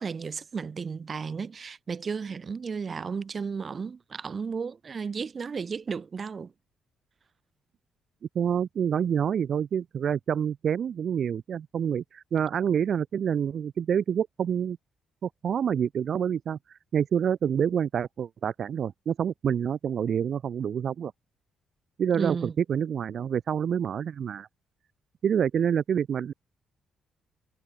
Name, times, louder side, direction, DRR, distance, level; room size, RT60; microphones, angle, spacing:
voice 1, 0.0-6.5 22.1-22.5, right 5 dB, 40° right, 1.8 m, -33 dB
voice 2, 8.3-14.8 15.2-21.1 22.0-24.5 25.2-26.3, right 8 dB, 55° right, 1.4 m, -27 dB
cardioid pair, 90°, 0 cm